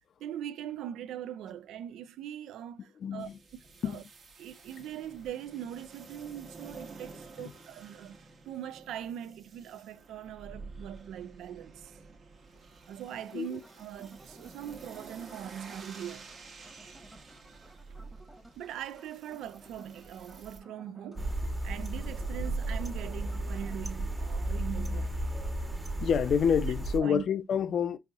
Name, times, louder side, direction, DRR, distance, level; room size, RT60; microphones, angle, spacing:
voice 1, 0.2-3.3 3.8-4.0 4.4-8.2 8.5-12.0 12.9-16.3 18.6-21.4 21.6-25.2 27.0-27.2, right 10 dB, 85° right, 0.4 m, -41 dB
voice 2, 3.0-3.3 3.8-4.0 13.3-13.6 26.0-28.0, left 7 dB, 60° left, 0.4 m, -28 dB
sound 1, 3.2-20.6, right 4 dB, 55° right, 1.1 m, -51 dB
sound 2, 13.1-23.8, right 1 dB, 5° right, 1.1 m, -57 dB
sound 3, 21.2-27.0, right 1 dB, 25° right, 1.2 m, -33 dB
5.3 x 2.7 x 2.3 m
cardioid pair, 90°, 0 cm